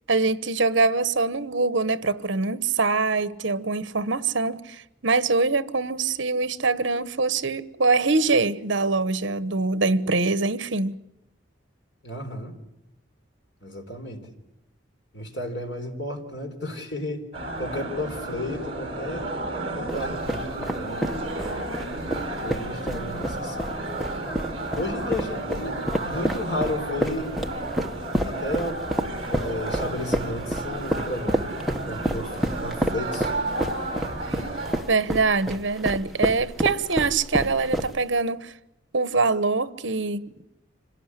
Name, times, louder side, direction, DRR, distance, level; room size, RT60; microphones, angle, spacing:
voice 1, 0.1-11.0 34.9-38.5 38.9-40.4, right 3 dB, 70° right, 1.1 m, -24 dB
voice 2, 12.0-12.6 13.6-14.4 15.1-17.2 17.6-19.3 19.7-21.2 22.4-23.9 24.7-27.3 28.2-28.9 29.3-31.6 31.9-32.4 32.6-33.3, left 1 dB, 60° left, 4.1 m, -33 dB
sound 1, 17.3-34.8, right 2 dB, 30° right, 5.2 m, -32 dB
sound 2, 19.9-38.2, right 1 dB, ahead, 1.2 m, -29 dB
26.5 x 17.5 x 9.9 m
head